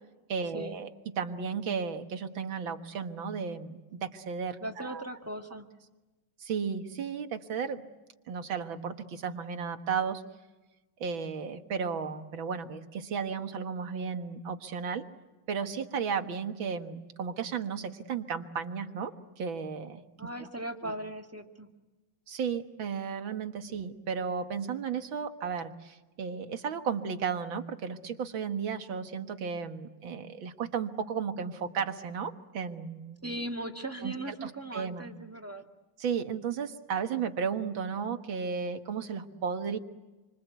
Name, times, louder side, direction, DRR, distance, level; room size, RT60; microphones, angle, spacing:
voice 1, 0.3-5.0 6.4-7.9 8.3-10.2 11.0-15.1 15.5-20.0 20.8-20.9 22.3-33.2 34.0-34.1 34.4-35.1 36.0-39.8, right 6 dB, 65° right, 7 dB, 2.2 m, -34 dB
voice 2, 4.6-5.7 20.2-21.7 33.2-35.6, right 1 dB, 5° right, 4 dB, 1.7 m, -38 dB
28.5 x 25.0 x 8.2 m, 1.1 s
omnidirectional pair, 2.3 m